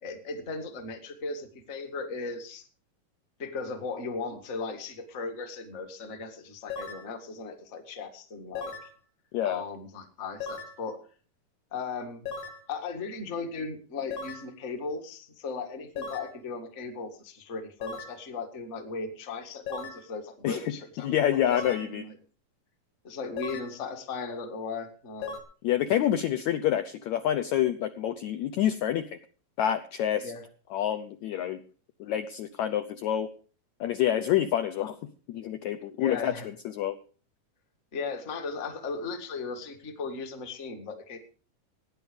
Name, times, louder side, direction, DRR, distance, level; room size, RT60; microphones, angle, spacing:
voice 1, 0.0-2.6 3.4-8.9 9.4-11.0 11.7-12.2 12.7-21.4 21.7-22.2 23.0-25.4 30.2-30.4 36.0-36.5 37.9-41.2, left 4 dB, 30° left, 6 dB, 1.3 m, -37 dB
sound 1, 6.7-7.1 8.5-8.9 10.4-10.8 12.2-12.6 14.1-14.5 16.0-16.3 17.8-18.2 19.7-20.0 21.5-21.9 23.4-23.7 25.2-25.4, left 5 dB, 50° left, 2.7 m, -37 dB
voice 2, 21.0-22.1 25.6-29.1 29.6-30.3 30.7-31.6 32.0-33.3 33.8-35.0 35.3-36.3 36.8-37.0, left 11 dB, 75° left, 9 dB, 1.8 m, -27 dB
17.5 x 9.8 x 5.1 m, 0.40 s
omnidirectional pair, 4.0 m